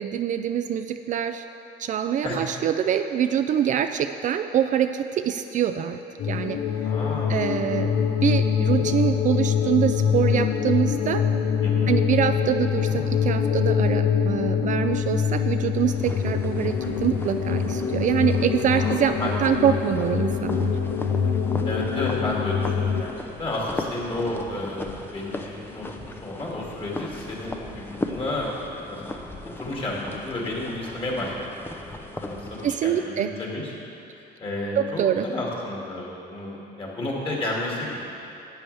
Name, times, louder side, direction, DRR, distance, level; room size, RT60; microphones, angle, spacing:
voice 1, 0.0-1.4 1.8-6.0 6.3-6.6 7.3-8.0 8.2-11.3 11.9-20.7 32.6-33.3 34.8-35.3, right 9 dB, 50° right, 8 dB, 0.4 m, -25 dB
sound 1, 6.2-23.0, left 7 dB, 70° left, 0.7 m, -24 dB
voice 2, 6.8-7.5 11.6-11.9 18.7-19.3 21.6-23.1 23.4-29.2 29.6-31.3 31.8-33.7 34.1-38.0, left 2 dB, 30° left, -4 dB, 2.3 m, -32 dB
Drum, 8.8-10.3 12.9-15.1, left 2 dB, 90° left, 2.3 m, -46 dB
sound 2, 15.9-32.7, left 2 dB, 15° left, 0.6 m, -38 dB
11.5 x 8.8 x 3.4 m, 2.9 s
cardioid pair, 110°, 17 cm